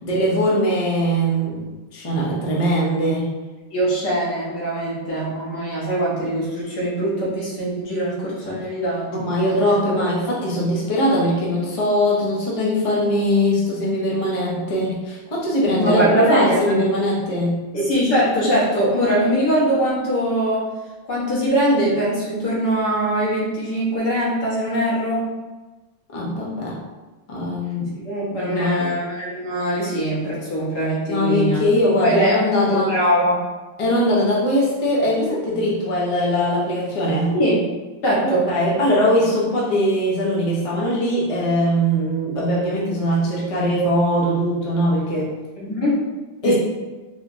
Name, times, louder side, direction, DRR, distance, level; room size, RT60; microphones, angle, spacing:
voice 1, 0.0-3.3 8.4-8.6 9.1-17.6 26.1-26.8 27.3-27.9 28.3-28.9 31.1-32.9 33.8-37.3 38.2-45.3 46.4-46.5, equal, 40° left, -5 dB, 0.4 m, -21 dB
voice 2, 3.7-9.1 9.4-9.5 15.8-16.8 17.7-20.7 21.1-25.3 28.0-31.6 32.0-32.4 32.7-33.4 37.3-37.6 38.0-38.5 45.6-46.1 46.4-46.5, right 1 dB, 70° left, -6 dB, 1.7 m, -21 dB
4.1 x 3.0 x 2.6 m, 1.2 s
omnidirectional pair, 1.9 m